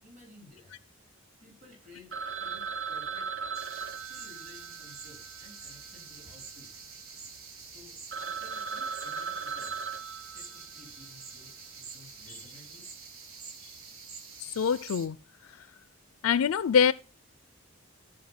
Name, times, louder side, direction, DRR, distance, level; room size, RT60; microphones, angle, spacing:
voice 1, 0.0-0.8 1.4-3.6 3.9-6.8 7.6-9.8 10.2-12.9, left 2 dB, 35° right, 4.1 m, -55 dB
Telephone, 2.1-6.5 6.7-6.8 7.4-7.5 7.8-7.9 8.1-11.1, right 6 dB, 60° right, 0.8 m, -38 dB
sound 1, 3.5-15.1, right 5 dB, 75° right, 1.5 m, -47 dB
voice 2, 14.4-15.2 15.6-15.7 16.2-16.9, left 7 dB, 80° left, 0.4 m, -24 dB
13.5 x 4.8 x 5.8 m
head